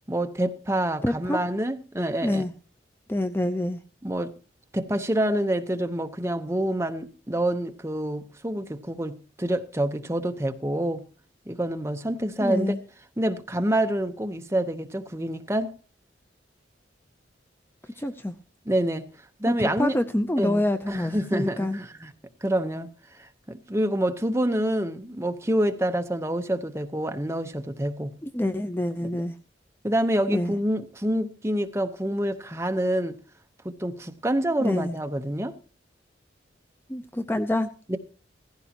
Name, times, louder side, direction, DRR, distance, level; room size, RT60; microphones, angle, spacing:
voice 1, 0.1-2.4 4.0-4.3 4.7-11.0 11.5-12.7 13.2-15.7 18.7-19.0 19.4-20.0 20.4-20.6 20.9-22.1 22.4-22.9 23.2-28.1 29.8-33.2 33.8-35.5 37.9-38.0, right 1 dB, 15° right, 0.9 m, -27 dB
voice 2, 1.0-1.4 2.2-2.5 3.1-3.8 12.4-12.8 18.0-18.3 19.5-21.8 28.2-29.3 30.3-30.5 34.6-35.0 36.9-37.7, left 1 dB, 10° left, 0.5 m, -26 dB
17.0 x 15.5 x 2.9 m
head